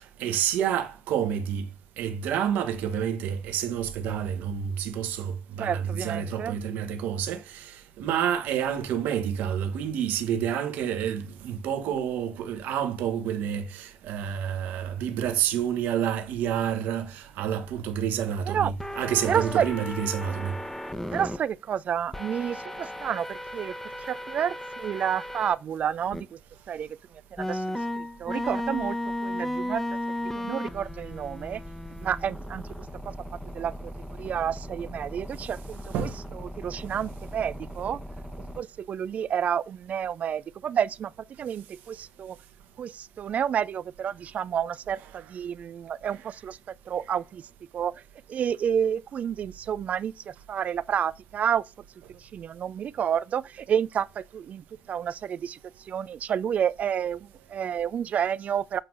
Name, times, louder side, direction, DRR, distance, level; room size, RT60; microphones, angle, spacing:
voice 1, 0.0-1.7 2.0-20.5 35.9-36.2, right 9 dB, 70° right, 1.2 m, -29 dB
voice 2, 5.6-6.6 18.4-18.7 19.2-19.7 21.1-26.4 26.7-29.0 29.2-29.8 30.2-31.6 32.0-33.1 33.5-38.0 38.6-41.1 41.4-42.4 42.8-47.5 47.7-47.9 48.3-51.6 52.1-58.8, right 8 dB, 55° right, 0.4 m, -30 dB
sound 1, 18.8-21.4 22.1-25.5 26.1-26.2 27.4-38.6, left 1 dB, 10° left, 1.2 m, -35 dB
7.9 x 4.5 x 3.8 m
hypercardioid pair, 50°, 3 cm